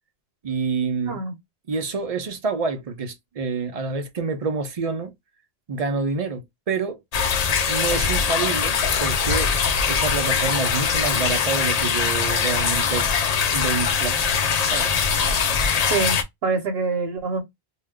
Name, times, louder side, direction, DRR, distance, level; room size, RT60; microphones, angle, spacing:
voice 1, 0.4-1.2 1.7-5.1 5.7-7.0 7.7-9.6 9.8-13.1 13.5-14.4 14.7-15.0, right 4 dB, 45° right, 0.5 m, -27 dB
sound 1, 7.1-16.2, left 6 dB, 50° left, 0.5 m, -22 dB
voice 2, 15.9-17.4, right 4 dB, 75° right, 1.0 m, -25 dB
2.4 x 2.1 x 3.4 m
omnidirectional pair, 1.0 m